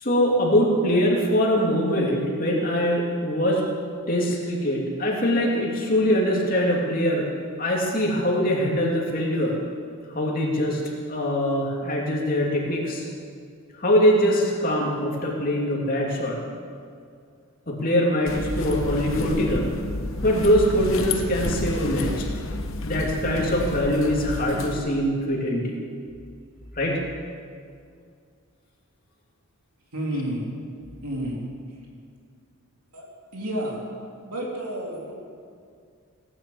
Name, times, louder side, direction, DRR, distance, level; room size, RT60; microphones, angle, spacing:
voice 1, 0.0-3.6 4.1-7.3 7.6-9.5 10.1-10.8 11.1-13.1 13.8-16.4 17.7-19.7 20.2-22.3 22.8-25.7 26.8-27.0, equal, 40° left, -2 dB, 2.8 m, -23 dB
sound 1, 18.3-24.8, left 2 dB, 60° left, 1.1 m, -30 dB
voice 2, 29.9-30.5 31.0-31.4 32.9-33.1 33.3-33.8 34.3-35.1, right 1 dB, 90° right, -3 dB, 3.5 m, -30 dB
17.5 x 10.0 x 8.0 m, 2.2 s
head